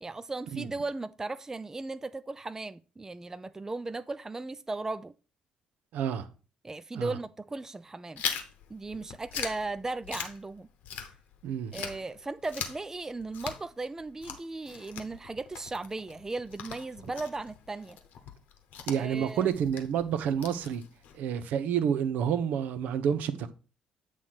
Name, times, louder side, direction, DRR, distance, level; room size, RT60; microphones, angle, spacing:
voice 1, 0.0-5.1 6.6-8.2 8.7-10.7 11.7-18.0 18.9-19.6, right 3 dB, 15° right, 0.3 m, -37 dB
voice 2, 5.9-6.3 7.0-7.1 11.4-11.7 18.9-20.8 21.1-23.5, right 8 dB, 60° right, 0.6 m, -29 dB
Chewing mastication, 8.2-11.4 11.7-21.2, left 7 dB, 60° left, 0.9 m, -41 dB
8.3 x 3.2 x 5.7 m
figure-of-eight pair, 45°, 3 cm